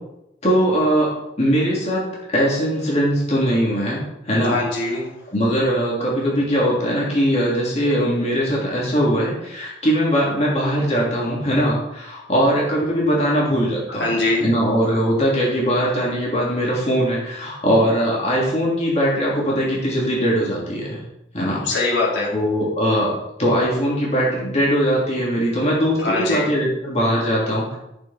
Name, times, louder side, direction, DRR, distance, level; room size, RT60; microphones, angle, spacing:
voice 1, 0.4-1.1 1.4-4.6 5.3-14.1 14.4-21.0 21.3-21.6 22.3-23.1 23.4-27.8, equal, 35° left, -5 dB, 3.4 m, -20 dB
voice 2, 4.4-5.1 13.9-14.5 21.6-22.3 26.0-26.4, left 2 dB, 75° left, -5 dB, 3.8 m, -22 dB
14.0 x 7.3 x 4.5 m, 0.87 s
head